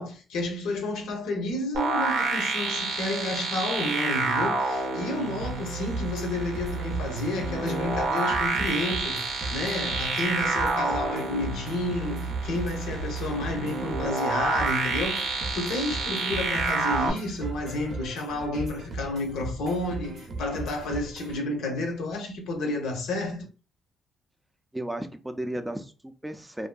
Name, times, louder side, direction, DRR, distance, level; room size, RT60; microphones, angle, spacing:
voice 1, 0.0-23.5, left 2 dB, 85° left, 0.7 m, -31 dB
sound 1, 1.7-17.1, right 3 dB, 90° right, 0.7 m, -29 dB
sound 2, 5.4-21.4, right 2 dB, 50° right, 0.6 m, -38 dB
voice 2, 24.7-26.7, right 1 dB, 10° right, 0.3 m, -34 dB
2.6 x 2.5 x 2.3 m
cardioid pair, 90°, 0 cm